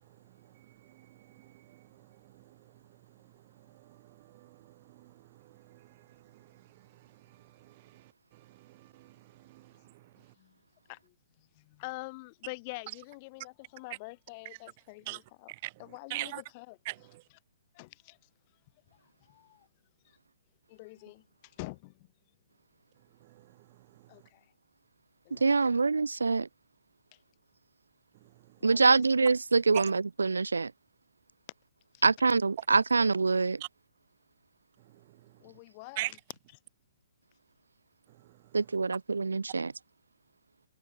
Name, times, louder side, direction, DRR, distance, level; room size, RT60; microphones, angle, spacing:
voice 1, 0.4-2.7 3.2-10.3 15.1-15.2 15.5-15.7 16.1-16.4 16.9-17.2 23.2-24.1 28.5-28.6 29.7-29.8 33.6-33.7 34.8-34.9 35.2-35.4 36.0-36.1 38.1-38.4, right 19 dB, 40° right, 0.7 m, -44 dB
voice 2, 10.2-10.6 10.9-15.5 15.8-16.8 17.7-18.2 18.9-19.7 20.0-20.2 20.7-22.1 24.1-24.5 25.3-25.8 27.1-27.2 28.6-29.1 31.9-32.0 35.4-36.2, left 26 dB, 35° left, 1.6 m, -46 dB
voice 3, 25.3-26.5 28.6-30.7 32.0-33.6 38.5-39.7, right 4 dB, 80° right, 0.4 m, -25 dB
figure-of-eight pair, 120°, 0 cm